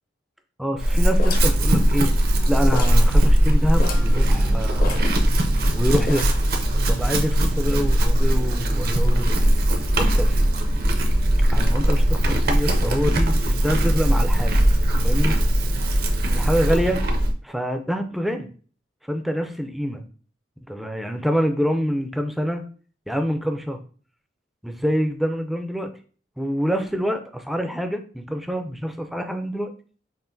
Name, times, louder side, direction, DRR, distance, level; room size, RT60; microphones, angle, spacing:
voice 1, 0.6-2.1 2.5-5.1 5.8-6.4 6.9-9.5 10.0-10.5 11.5-14.6 14.9-15.4 16.3-17.0 17.4-18.5 19.1-20.0 20.7-22.6 23.1-23.8 24.6-25.9 26.4-29.7, equal, ahead, 5 dB, 0.4 m, -26 dB
Chewing mastication / Livestock farm animals working animals, 0.8-17.3, right 1 dB, 55° right, 0.6 m, -19 dB
sound 1, 1.2-2.4 2.7-3.1 3.4-3.5 3.8-4.2 4.8-5.7 6.1-6.5, left 2 dB, 55° left, 0.7 m, -32 dB
5.5 x 2.5 x 2.6 m, 0.40 s
head